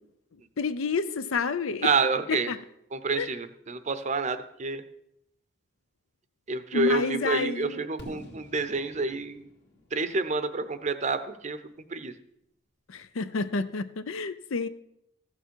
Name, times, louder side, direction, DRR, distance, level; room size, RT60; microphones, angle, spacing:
voice 1, 0.6-1.9 2.3-2.6 3.2-3.3 6.7-7.8 12.9-14.7, left 4 dB, 85° left, 0.6 m, -29 dB
voice 2, 1.8-2.5 2.9-4.8 6.5-9.4 9.9-11.6 11.9-12.1, right 3 dB, 35° right, 0.6 m, -28 dB
Fireworks, 8.0-11.9, equal, 55° left, 1.9 m, -49 dB
14.5 x 6.9 x 4.6 m
head